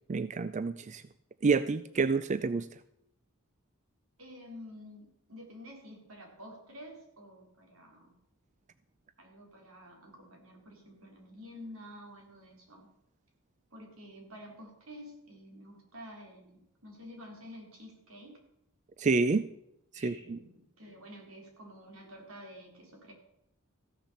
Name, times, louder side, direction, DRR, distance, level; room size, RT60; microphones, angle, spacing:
voice 1, 0.1-1.0 1.4-2.7 19.0-19.5 20.0-20.4, right 4 dB, 35° right, 13 dB, 0.4 m, -28 dB
voice 2, 4.2-8.1 9.2-12.9 13.7-18.3 19.9-23.1, equal, 85° right, 1 dB, 3.9 m, -50 dB
14.5 x 7.3 x 6.9 m, 0.80 s
head